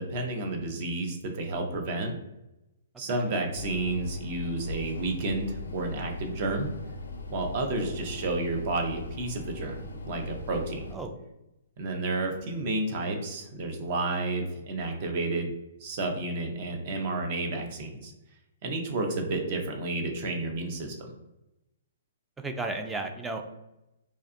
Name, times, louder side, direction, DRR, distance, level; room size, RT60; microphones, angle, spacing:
voice 1, 0.0-2.1 3.0-6.7 7.3-9.8 10.0-10.8 11.8-15.5 15.8-18.1 18.6-21.1, right 2 dB, 45° right, 3 dB, 0.6 m, -31 dB
sound 1, 3.5-11.0, left 2 dB, 85° left, 0.4 m, -40 dB
voice 2, 10.9-11.2 22.4-23.5, right 2 dB, 10° right, 5 dB, 0.3 m, -34 dB
2.8 x 2.3 x 2.5 m, 0.93 s
hypercardioid pair, 140°, 0 cm